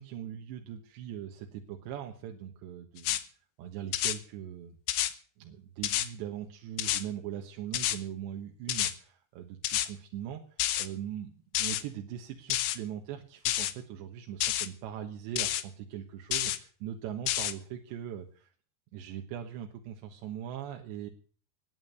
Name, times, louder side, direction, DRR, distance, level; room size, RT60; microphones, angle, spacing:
voice 1, 0.0-3.2 3.6-4.8 5.4-10.4 10.8-18.5 18.9-21.1, right 10 dB, 90° right, 3 dB, 3.5 m, -40 dB
sound 1, 3.0-3.2 3.9-4.2 4.9-5.1 5.8-6.1 6.8-7.0 7.7-8.0 8.7-8.9 9.6-9.9 10.6-10.9 11.6-11.8 12.5-12.8 13.5-13.7 14.4-14.7 15.4-15.6 16.3-16.6 17.3-17.5, left 13 dB, 75° left, 2.9 m, -29 dB
20.5 x 7.3 x 8.0 m, 0.44 s
omnidirectional pair, 4.9 m